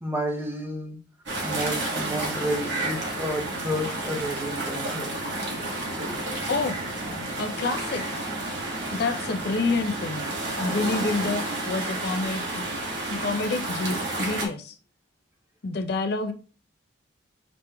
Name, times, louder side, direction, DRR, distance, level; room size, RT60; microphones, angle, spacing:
voice 1, 0.0-1.0 1.4-5.1, equal, 10° right, 0.6 m, -31 dB
sound 1, 1.3-14.5, right 2 dB, 60° right, 1.1 m, -31 dB
voice 2, 7.4-8.0 8.9-10.3 10.6-12.6 13.1-14.8 15.6-16.3, left 3 dB, 55° left, 0.5 m, -28 dB
5.1 x 3.0 x 2.2 m
head